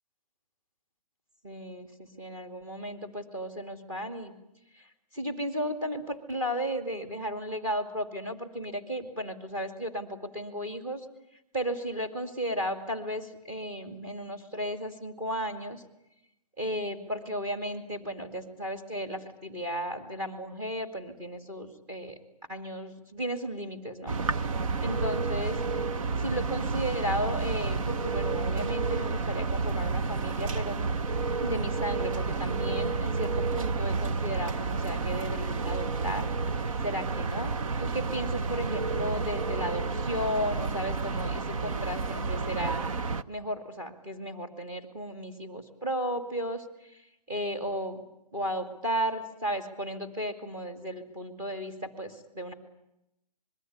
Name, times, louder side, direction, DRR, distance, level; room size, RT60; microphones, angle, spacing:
voice 1, 1.4-4.3 4.7-11.1 11.5-15.8 16.6-22.2 22.5-24.2 24.8-25.6 26.2-30.8 31.4-36.3 36.8-42.8 43.3-48.0 48.3-52.5, equal, 15° right, 6 dB, 2.5 m, -34 dB
sound 1, 24.1-43.2, right 4 dB, 55° right, 1.0 m, -30 dB
26.0 x 21.5 x 9.6 m, 0.85 s
hypercardioid pair, 175°, 20 cm